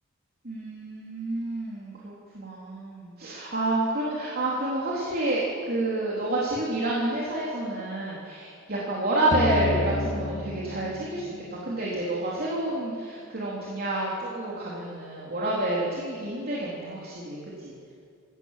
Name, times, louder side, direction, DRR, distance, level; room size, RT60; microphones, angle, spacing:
voice 1, 0.4-17.7, right 1 dB, 45° right, -5 dB, 3.6 m, -29 dB
sound 1, 9.3-12.2, left 2 dB, 35° left, 0.8 m, -31 dB
26.5 x 17.5 x 7.6 m, 2.4 s
head